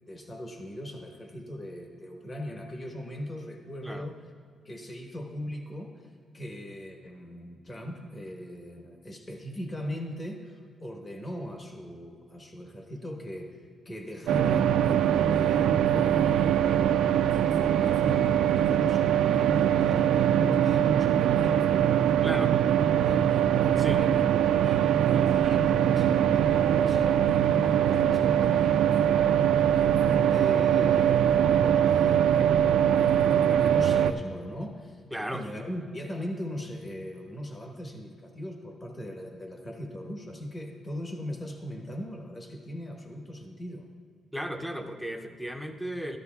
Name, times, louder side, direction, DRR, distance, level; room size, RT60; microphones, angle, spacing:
voice 1, 0.0-4.2 4.6-16.8 17.3-24.3 24.6-35.0 35.3-43.9, equal, 25° left, 2 dB, 1.1 m, -40 dB
sound 1, 14.3-34.1, right 10 dB, 90° right, 0.3 m, -22 dB
voice 2, 22.2-22.5 23.8-24.0 35.1-35.5 44.3-46.2, equal, ahead, 6 dB, 0.6 m, -35 dB
13.5 x 12.5 x 2.3 m, 2.1 s
cardioid pair, 120°, 0 cm